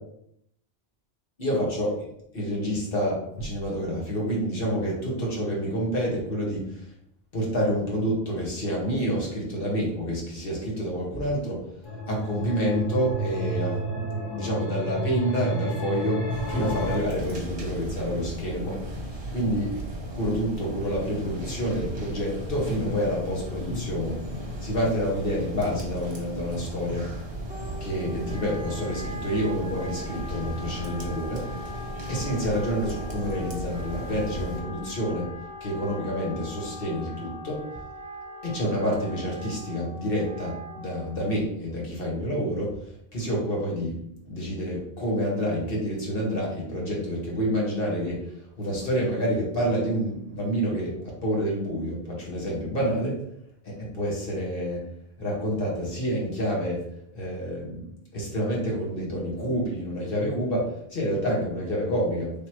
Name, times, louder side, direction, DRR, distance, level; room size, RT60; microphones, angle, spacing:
voice 1, 1.4-2.0 2.3-6.8 7.3-11.6 12.1-16.2 16.5-18.8 19.1-19.8 20.1-24.2 24.6-27.1 27.8-31.5 32.1-35.3 35.6-37.6 38.4-42.8 43.1-48.2 48.6-53.2 53.6-54.8 55.2-56.8 57.1-62.3, equal, 60° left, -3 dB, 1.4 m, -28 dB
sound 1, 11.8-17.0, right 1 dB, 25° left, 0.8 m, -30 dB
sound 2, 16.3-34.6, right 1 dB, 35° right, 0.9 m, -36 dB
Wind instrument woodwind instrument, 27.5-41.5, left 1 dB, 10° right, 0.5 m, -41 dB
3.4 x 2.9 x 4.4 m, 0.73 s
omnidirectional pair, 1.1 m